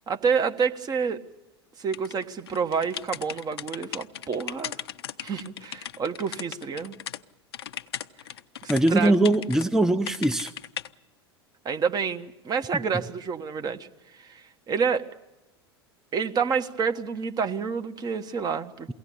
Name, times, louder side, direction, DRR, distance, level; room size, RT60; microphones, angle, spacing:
voice 1, 0.1-1.2 1.8-4.7 5.2-7.0 8.6-9.2 11.6-13.9 14.1-15.0 16.1-18.9, right 6 dB, 30° right, 7 dB, 1.3 m, -28 dB
sound 1, 1.9-7.2 7.5-9.7 10.1-10.9, left 10 dB, 70° left, 0.7 m, -37 dB
voice 2, 8.7-10.5 12.7-12.8, right 1 dB, 5° right, 9 dB, 0.8 m, -21 dB
23.0 x 17.0 x 8.6 m, 1.0 s
hypercardioid pair, 85°, 13 cm